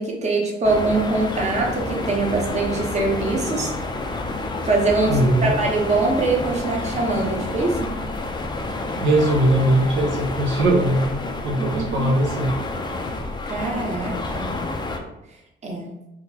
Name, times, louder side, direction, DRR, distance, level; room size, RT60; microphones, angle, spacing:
voice 1, 0.0-3.7 4.6-7.9 11.6-12.2 13.5-14.6 15.6-15.9, right 3 dB, 35° right, -1 dB, 0.8 m, -23 dB
sound 1, 0.6-15.0, left 2 dB, 20° left, 0.4 m, -29 dB
voice 2, 5.1-5.6 9.0-12.5, right 1 dB, 75° right, 0 dB, 0.6 m, -20 dB
3.7 x 2.2 x 2.7 m, 0.90 s
cardioid pair, 90°, 20 cm